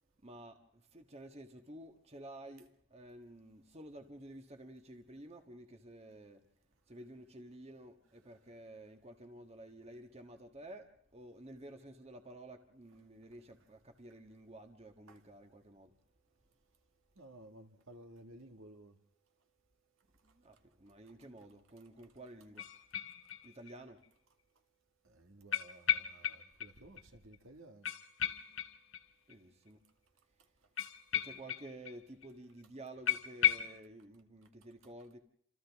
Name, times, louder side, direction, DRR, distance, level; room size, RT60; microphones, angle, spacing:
voice 1, 0.2-6.5 6.9-15.9 20.2-22.7 23.4-24.0 29.3-29.8 31.1-35.2, right 1 dB, 30° right, 1.6 m, -52 dB
voice 2, 17.1-19.0 20.2-20.6 23.1-23.2 25.0-27.9 30.6-30.9, right 1 dB, 65° right, 2.0 m, -56 dB
sound 1, 22.6-23.7 24.0-24.1 25.5-26.7 27.0-27.1 27.3-27.4 27.8-29.3 30.8-32.0 32.2-32.3 32.6-32.7 33.1-33.8, left 9 dB, 60° left, 1.0 m, -35 dB
29.0 x 27.0 x 3.6 m
head